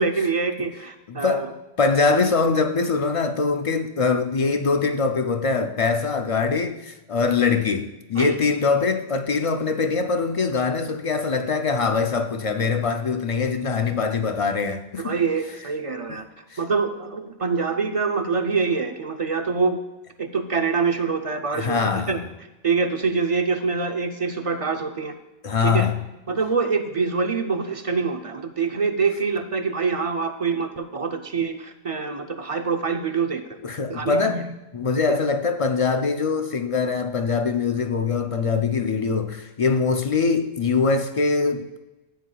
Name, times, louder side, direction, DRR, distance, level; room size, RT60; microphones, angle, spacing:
voice 1, 0.0-1.5 8.2-8.3 15.0-16.3 16.6-19.8 20.2-22.2 22.6-25.1 25.6-25.9 26.3-33.4 33.9-34.5 35.1-35.2, right 4 dB, 40° right, 0.5 m, -25 dB
voice 2, 1.1-1.5 1.8-15.2 16.1-16.2 16.5-16.6 21.5-22.2 25.4-26.0 33.6-34.4 34.7-41.8, left 4 dB, 50° left, 0.4 m, -23 dB
13.5 x 9.1 x 2.3 m
omnidirectional pair, 1.1 m